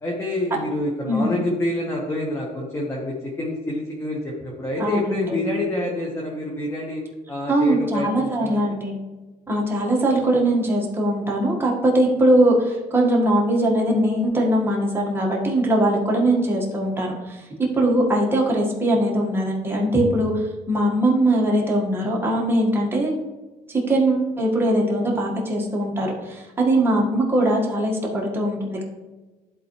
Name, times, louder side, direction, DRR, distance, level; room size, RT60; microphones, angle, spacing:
voice 1, 0.0-7.0 7.3-8.7, left 1 dB, 15° left, -3 dB, 1.4 m, -27 dB
voice 2, 1.0-1.4 4.8-5.4 7.5-8.9 9.5-17.4 17.7-20.3 20.7-23.1 23.7-28.8, right 1 dB, 15° right, -3 dB, 1.7 m, -21 dB
11.5 x 4.0 x 3.2 m, 1.2 s
cardioid pair, 110°, 17 cm